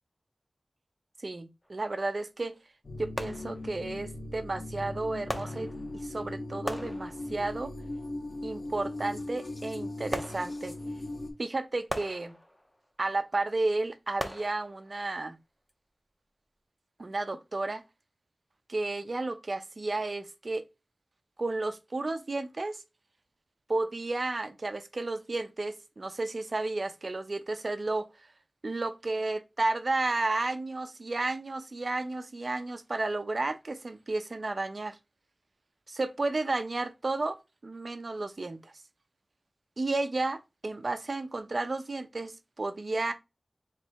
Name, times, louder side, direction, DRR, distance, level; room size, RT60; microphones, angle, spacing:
voice 1, 1.2-2.5 3.0-5.7 6.0-7.7 8.4-10.8 11.4-12.4 13.0-15.4 17.0-17.8 18.7-20.6 21.4-22.8 23.7-28.1 28.6-35.0 35.9-37.4 37.6-38.7 39.8-43.1, right 2 dB, 60° right, 0.7 m, -32 dB
sound 1, 1.6-1.8 3.2-4.0 5.3-6.2 6.7-7.6 10.1-11.0 11.9-12.9 14.2-15.1 15.7-15.8, equal, 10° left, 0.8 m, -39 dB
sound 2, 2.8-11.3, left 1 dB, 70° left, 1.7 m, -39 dB
3.3 x 3.2 x 4.6 m
wide cardioid pair, 55°, 0 cm